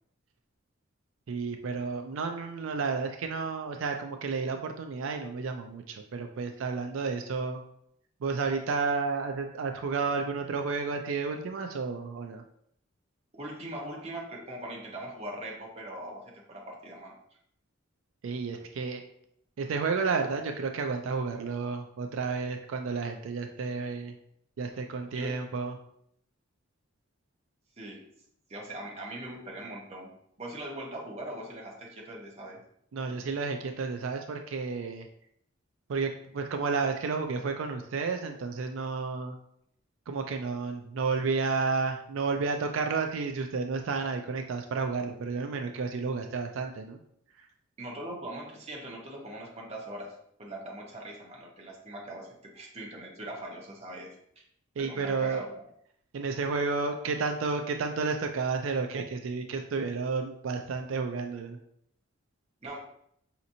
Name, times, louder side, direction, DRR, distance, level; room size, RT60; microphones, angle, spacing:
voice 1, 1.3-7.6 8.2-12.4 18.2-19.0 19.6-24.1 24.6-25.7 32.9-35.1 35.9-39.4 40.1-47.0 54.8-55.5 56.1-61.6, right 4 dB, 85° right, 5 dB, 0.4 m, -31 dB
voice 2, 13.3-17.1 25.1-25.3 27.8-28.0 28.5-30.1 30.4-32.6 47.8-50.1 50.4-54.2 54.8-55.5 62.6-62.9, right 1 dB, 30° right, -2 dB, 0.9 m, -41 dB
5.0 x 2.9 x 2.6 m, 0.71 s
head